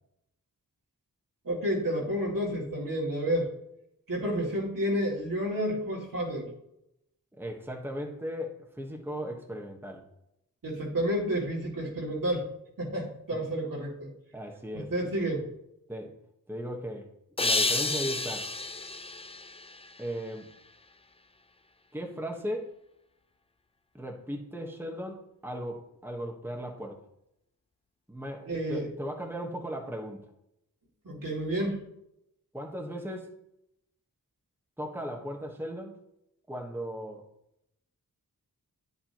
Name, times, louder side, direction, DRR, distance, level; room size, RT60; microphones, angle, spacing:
voice 1, 1.4-3.5 4.1-6.5 10.6-12.5 12.8-14.1 14.7-15.5 28.5-28.9 31.0-31.8, equal, 60° right, -3 dB, 2.5 m, -30 dB
voice 2, 7.4-10.0 13.3-13.5 14.3-15.1 15.9-16.1 16.5-17.1 17.4-18.5 20.0-20.4 21.9-22.7 23.9-27.0 28.1-30.2 32.5-33.3 34.8-36.0 36.5-37.2, equal, 5° right, 1 dB, 1.2 m, -37 dB
sound 1, 17.4-20.5, left 3 dB, 15° left, 0.4 m, -31 dB
9.8 x 7.1 x 3.0 m, 0.81 s
wide cardioid pair, 75°, 37 cm